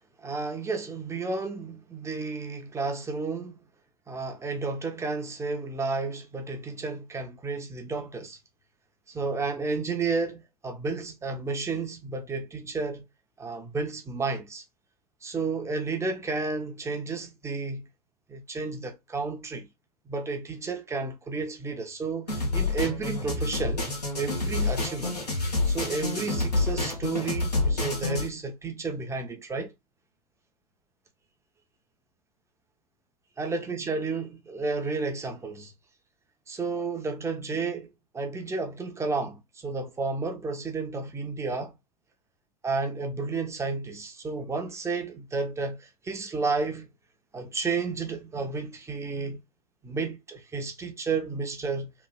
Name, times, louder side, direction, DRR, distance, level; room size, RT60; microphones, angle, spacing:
voice 1, 0.2-3.6 4.1-8.4 9.1-13.1 13.4-14.6 15.2-17.9 18.3-19.7 20.1-23.8 24.1-29.7 33.4-35.7 36.5-37.9 38.1-41.7 42.6-46.9 47.3-49.4 49.8-51.9, right 4 dB, 15° right, 0.6 m, -32 dB
sound 1, 22.3-28.3, left 3 dB, 85° left, 1.1 m, -28 dB
3.1 x 2.4 x 2.2 m
figure-of-eight pair, 80°, 20 cm